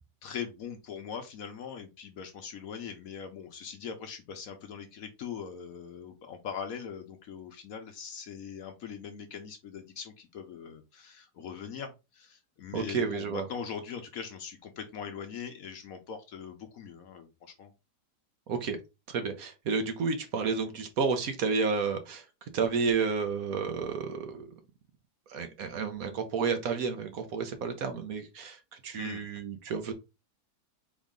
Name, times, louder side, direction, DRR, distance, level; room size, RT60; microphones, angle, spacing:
voice 1, 0.2-17.7 29.0-29.2, left 7 dB, 65° left, 1.0 m, -41 dB
voice 2, 12.7-13.4 18.5-18.8 19.1-22.2 22.5-24.5 25.3-29.9, right 5 dB, 60° right, 1.1 m, -31 dB
4.0 x 3.6 x 3.6 m
omnidirectional pair, 1.8 m